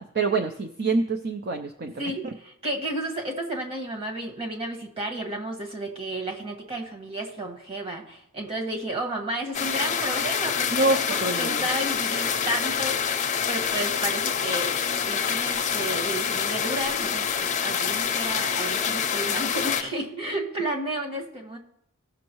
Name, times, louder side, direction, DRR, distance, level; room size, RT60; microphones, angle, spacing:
voice 1, 0.0-2.1 10.7-11.6, right 3 dB, 45° right, 6 dB, 0.5 m, -26 dB
voice 2, 2.0-21.6, right 1 dB, 25° right, 1 dB, 1.8 m, -32 dB
sound 1, 9.5-19.8, left 7 dB, 35° left, 0.6 m, -26 dB
17.5 x 6.3 x 3.1 m, 0.73 s
head